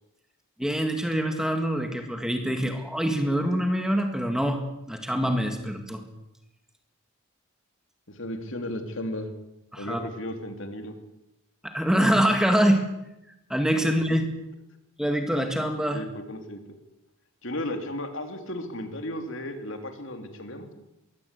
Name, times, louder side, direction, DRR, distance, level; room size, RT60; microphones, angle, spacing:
voice 1, 0.6-4.6 4.9-6.0 9.7-10.1 11.6-12.9 13.5-14.3 15.0-16.0, equal, 5° right, 5 dB, 2.0 m, -25 dB
voice 2, 8.1-9.3 9.8-10.9 13.8-13.9 15.9-16.6 17.4-20.7, left 1 dB, 60° left, 6 dB, 3.1 m, -34 dB
22.5 x 17.5 x 8.3 m, 0.89 s
head